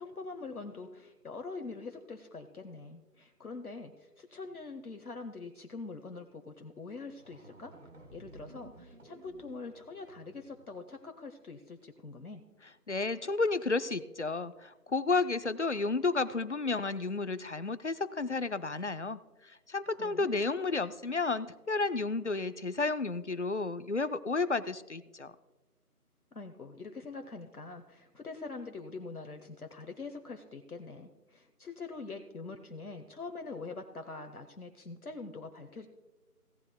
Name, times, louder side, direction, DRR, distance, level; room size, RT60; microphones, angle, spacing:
voice 1, 0.0-7.8 8.1-12.4 20.0-20.3 26.3-35.9, left 3 dB, 70° left, 6 dB, 1.1 m, -44 dB
Processed Balloon Sequence, 6.8-6.9 7.1-10.9, right 2 dB, 55° right, 2.0 m, -55 dB
voice 2, 12.9-25.3, left 3 dB, 50° left, 14 dB, 0.5 m, -32 dB
17.0 x 11.0 x 2.2 m, 1.2 s
figure-of-eight pair, 175°, 46 cm